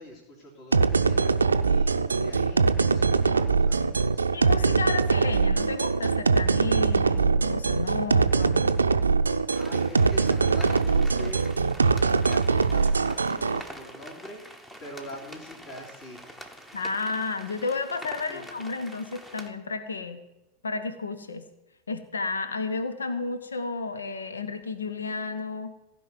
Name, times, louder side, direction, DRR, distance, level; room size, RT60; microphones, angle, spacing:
voice 1, 0.0-4.3 9.5-11.5 12.2-16.5 18.3-18.4, left 1 dB, 35° left, -3 dB, 3.3 m, -44 dB
sound 1, 0.7-13.6, right 4 dB, 75° right, 0.6 m, -22 dB
voice 2, 4.3-8.7 16.7-20.2 20.6-21.4 21.9-25.7, left 4 dB, 75° left, 11 dB, 1.0 m, -32 dB
sound 2, 9.5-19.5, equal, 10° left, 1.2 m, -46 dB
16.0 x 5.4 x 9.1 m, 0.97 s
figure-of-eight pair, 90°, 0 cm